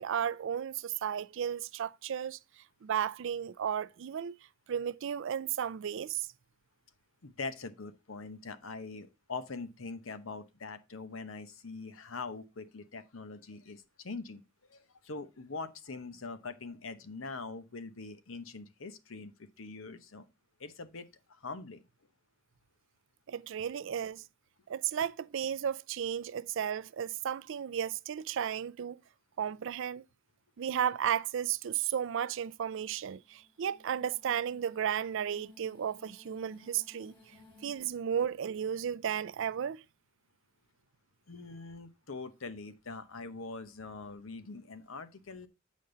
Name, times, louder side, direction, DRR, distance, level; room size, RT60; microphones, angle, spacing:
voice 1, 0.0-2.4 2.8-4.3 4.7-6.3 23.3-24.2 24.7-29.0 29.4-30.0 30.6-37.1 37.6-39.8, right 9 dB, 65° right, 0.4 m, -34 dB
voice 2, 7.2-14.4 14.7-20.3 20.6-21.8 41.3-45.5, left 4 dB, 80° left, 0.9 m, -43 dB
sound 1, 32.4-37.9, left 3 dB, 25° left, 3.2 m, -60 dB
8.5 x 5.3 x 3.8 m
head